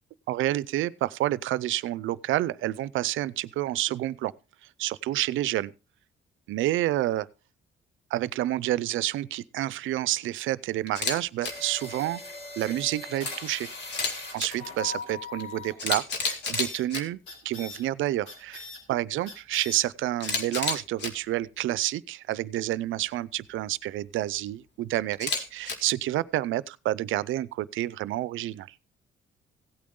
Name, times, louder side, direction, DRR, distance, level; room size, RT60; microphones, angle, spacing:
voice 1, 0.3-4.3 4.8-5.7 6.5-7.3 8.1-12.2 12.6-13.7 14.3-28.7, right 14 dB, 80° right, 0.5 m, -29 dB
Camera, 10.9-11.2 11.4-11.5 13.8-14.5 15.4-15.5 15.8-17.0 20.2-21.1 25.1-25.7, left 4 dB, 60° left, 2.2 m, -29 dB
sound 1, 11.4-15.8 16.3-16.8 17.3-17.8 18.3-18.8 19.3-19.8 20.3-20.4, left 3 dB, 90° left, 4.1 m, -40 dB
16.5 x 8.6 x 3.7 m
cardioid pair, 90°, 20 cm